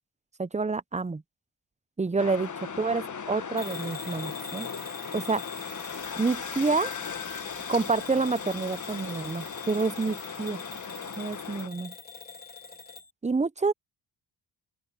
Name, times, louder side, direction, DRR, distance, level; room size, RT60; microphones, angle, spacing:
voice 1, 0.4-1.2 2.0-4.7 5.1-5.4 6.2-6.9 7.7-10.6 11.2-11.9 13.2-13.7, right 4 dB, 15° right, 0.7 m, -28 dB
sound 1, 2.2-11.7, left 6 dB, 40° left, 1.2 m, -38 dB
Bell / Alarm, 3.6-13.1, left 3 dB, 20° left, 3.6 m, -43 dB
open air
cardioid pair, 55°, 45 cm